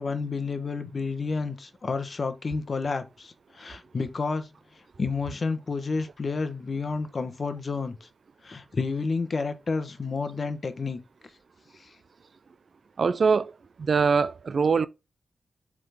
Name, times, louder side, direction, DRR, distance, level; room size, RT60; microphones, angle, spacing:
voice 1, 0.0-4.5 5.0-8.1 8.4-11.0 11.8-11.9, left 4 dB, 45° left, 1.0 m, -30 dB
voice 2, 13.0-13.5 13.8-14.9, right 5 dB, 60° right, 0.3 m, -22 dB
7.7 x 3.8 x 3.5 m
wide cardioid pair, 150°, 0 cm